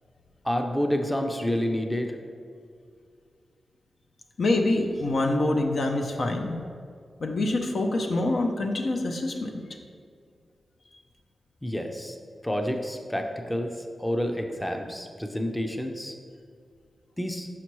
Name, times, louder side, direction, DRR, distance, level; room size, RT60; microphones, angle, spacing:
voice 1, 0.4-2.2 11.6-12.2 12.4-13.7 14.0-16.2 17.2-17.5, equal, 10° left, 4 dB, 0.5 m, -29 dB
voice 2, 4.4-6.6 7.2-9.6, left 2 dB, 65° left, 3 dB, 0.6 m, -25 dB
5.9 x 5.7 x 3.1 m, 2.3 s
cardioid pair, 65°, 0 cm